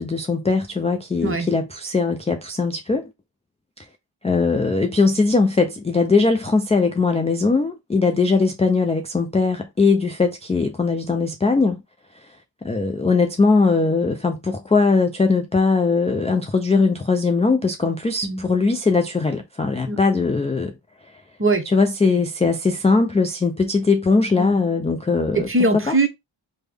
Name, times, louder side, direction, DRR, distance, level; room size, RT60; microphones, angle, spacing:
voice 1, 0.0-3.1 4.2-11.8 12.6-20.7 21.7-25.5 25.9-26.0, left 4 dB, 15° left, 0.3 m, -20 dB
voice 2, 25.3-26.1, right 2 dB, 25° right, 0.8 m, -21 dB
3.3 x 2.2 x 3.3 m
wide cardioid pair, 100°, 47 cm